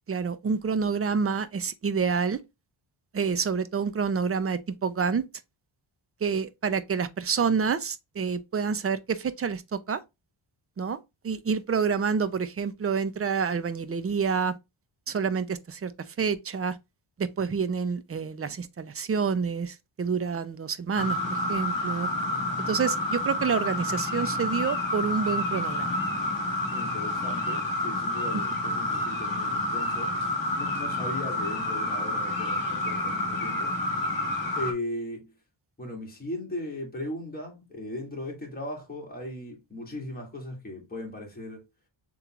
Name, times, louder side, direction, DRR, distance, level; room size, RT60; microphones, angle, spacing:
voice 1, 0.1-2.4 3.1-5.2 6.2-10.0 10.8-11.0 11.2-14.5 15.1-16.8 17.2-22.1 22.7-26.0, right 6 dB, 30° right, 0.5 m, -28 dB
sound 1, 21.0-34.7, left 1 dB, 45° left, 1.7 m, -29 dB
voice 2, 26.7-30.1 30.5-33.7 34.5-35.3 35.8-41.6, left 1 dB, 20° left, 2.0 m, -37 dB
6.7 x 3.1 x 2.4 m
wide cardioid pair, 160°, 48 cm